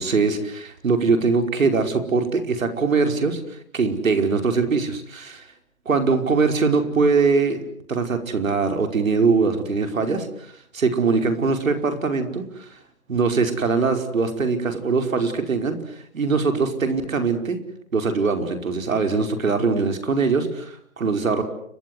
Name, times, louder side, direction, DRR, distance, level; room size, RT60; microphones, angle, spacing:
voice 1, 0.0-5.5 5.8-7.6 7.9-12.8 13.1-15.7 16.1-17.6 17.9-21.4, right 4 dB, 75° right, 7 dB, 5.3 m, -22 dB
30.0 x 23.0 x 8.1 m, 0.66 s
hypercardioid pair, 150°, 41 cm